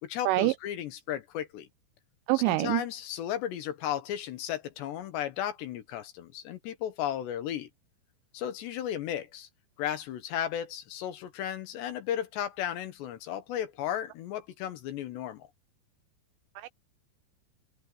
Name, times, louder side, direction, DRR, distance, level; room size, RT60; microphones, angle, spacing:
voice 1, 0.0-1.7 2.3-7.7 8.3-9.5 9.8-15.5, left 10 dB, 70° left, 3.0 m, -34 dB
voice 2, 2.3-2.8 16.6-16.7, right 21 dB, 85° right, 2.8 m, -25 dB
open air
omnidirectional pair, 5.9 m